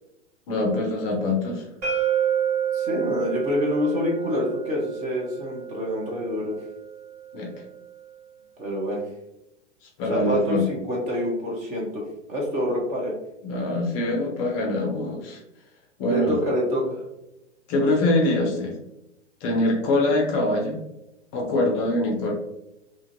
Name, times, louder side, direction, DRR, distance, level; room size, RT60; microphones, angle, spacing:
voice 1, 0.5-1.7 7.3-7.5 9.8-10.6 13.4-15.4 16.0-16.3 17.7-18.8 19.4-20.8 21.3-22.3, left 2 dB, 30° left, 0 dB, 0.5 m, -24 dB
sound 1, 1.8-7.6, right 9 dB, 35° right, 1.1 m, -29 dB
voice 2, 2.7-6.6 8.6-9.0 10.1-13.2 16.1-17.0, left 1 dB, 20° right, -2 dB, 0.5 m, -27 dB
2.5 x 2.4 x 2.6 m, 0.89 s
figure-of-eight pair, 110°, 37 cm